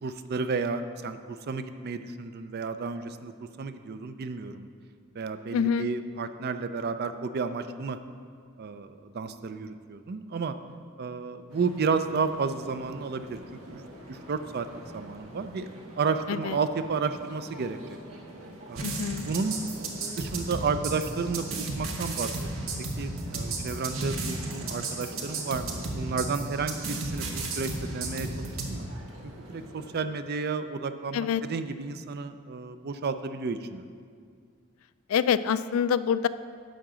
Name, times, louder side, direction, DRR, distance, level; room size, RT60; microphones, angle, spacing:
voice 1, 0.0-3.3 3.6-4.7 5.2-8.0 8.6-10.5 11.0-13.4 13.7-13.8 14.1-14.7 14.9-17.8 18.7-22.7 23.0-28.9 29.5-33.8, right 4 dB, 50° right, 10 dB, 0.4 m, -32 dB
voice 2, 5.5-5.9 16.3-16.6 18.8-19.3 31.1-31.4 35.1-36.3, left 7 dB, 70° left, 14 dB, 0.3 m, -26 dB
sound 1, 11.5-30.0, equal, 90° right, 1.4 m, -46 dB
sound 2, 18.8-28.7, right 2 dB, 70° right, 1.1 m, -34 dB
10.5 x 3.8 x 7.3 m, 2.1 s
head